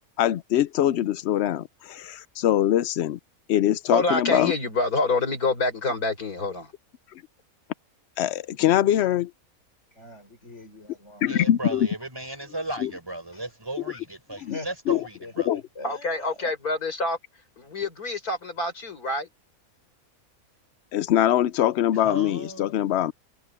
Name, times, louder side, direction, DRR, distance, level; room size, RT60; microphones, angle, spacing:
voice 1, 0.2-3.2 3.5-4.5 8.2-9.3 11.2-11.9 12.8-12.9 14.4-14.6 14.9-15.0 15.5-15.6 20.9-23.1, left 12 dB, 65° left, 0.7 m, -23 dB
voice 2, 3.9-6.7 15.8-17.2 17.6-19.3, left 2 dB, 80° left, 5.2 m, -26 dB
voice 3, 10.0-11.3 14.5-16.4, left 2 dB, 50° left, 5.2 m, -43 dB
voice 4, 11.3-15.6 21.9-22.8, right 1 dB, 15° right, 5.3 m, -36 dB
omnidirectional pair, 1.6 m